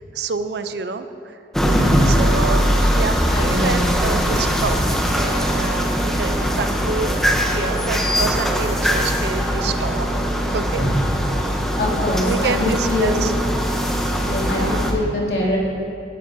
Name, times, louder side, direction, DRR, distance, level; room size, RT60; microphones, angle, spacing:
voice 1, 0.0-1.4 2.1-10.1 10.5-10.9 12.2-13.3 14.5-14.9, right 4 dB, 65° right, 10 dB, 0.5 m, -28 dB
sound 1, 1.5-14.9, equal, ahead, 0.7 m, -21 dB
voice 2, 1.7-2.2 3.3-4.4 10.8-10.9 11.8-13.2 13.7-13.9 14.2-15.6, left 1 dB, 70° left, -5 dB, 2.6 m, -23 dB
16.5 x 9.4 x 2.7 m, 2.9 s
head